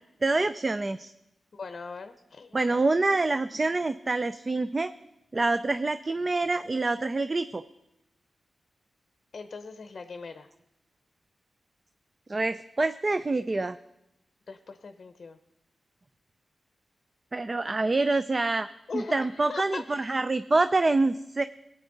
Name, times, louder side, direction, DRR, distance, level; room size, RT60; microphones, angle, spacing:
voice 1, 0.2-1.1 2.5-4.9 5.3-7.6 12.3-13.8 17.3-18.7 18.9-21.4, right 3 dB, 35° right, 12 dB, 0.4 m, -26 dB
voice 2, 1.5-2.7 9.3-10.5 14.5-15.4 18.9-20.2, left 4 dB, 55° left, 8 dB, 0.7 m, -40 dB
17.5 x 9.0 x 3.9 m, 0.87 s
wide cardioid pair, 85°, 0 cm